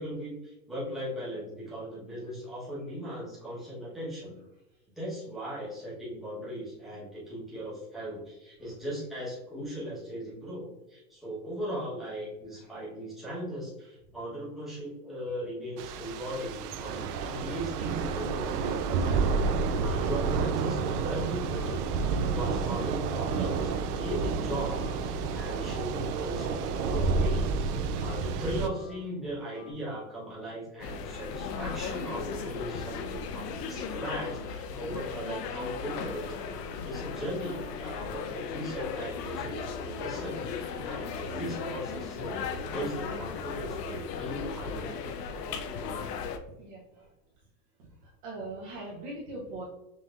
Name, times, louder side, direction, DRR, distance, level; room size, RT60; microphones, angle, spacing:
voice 1, 0.0-4.4 4.9-19.2 19.6-27.5 28.0-36.4 36.8-42.4 42.6-44.9, equal, ahead, -9 dB, 1.0 m, -38 dB
voice 2, 12.5-12.9 32.1-32.4 33.7-33.9 34.9-35.0 46.2-47.1 47.8-49.6, right 2 dB, 30° right, -5 dB, 0.7 m, -43 dB
Thunder / Rain, 15.8-28.7, right 5 dB, 75° right, 0.6 m, -30 dB
sound 1, 21.5-29.7, left 3 dB, 55° left, 1.0 m, -48 dB
sound 2, 30.8-46.4, left 5 dB, 80° left, 0.7 m, -36 dB
5.6 x 2.8 x 2.4 m, 0.90 s
supercardioid pair, 165°, 47 cm